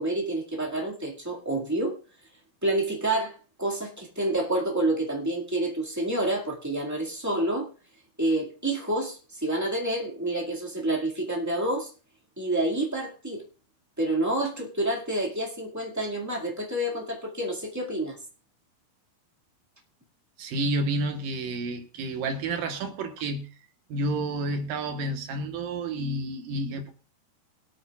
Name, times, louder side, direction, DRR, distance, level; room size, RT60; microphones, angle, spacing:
voice 1, 0.0-2.0 2.6-7.7 8.2-11.9 12.4-13.4 14.0-18.1, right 1 dB, 15° right, 0.6 m, -28 dB
voice 2, 20.4-23.5 23.9-26.9, right 2 dB, 70° right, 2.8 m, -30 dB
24.0 x 8.7 x 2.4 m
omnidirectional pair, 4.3 m